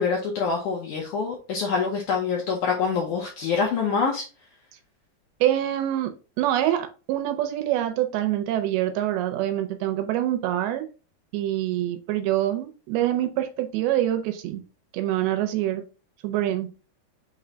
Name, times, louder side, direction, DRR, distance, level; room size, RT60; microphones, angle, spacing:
voice 1, 0.0-4.2, left 5 dB, 80° left, 1.8 m, -25 dB
voice 2, 5.4-10.9 11.3-14.6 14.9-15.8 16.2-16.7, right 13 dB, 80° right, 2.6 m, -25 dB
6.0 x 2.2 x 3.8 m
omnidirectional pair, 4.5 m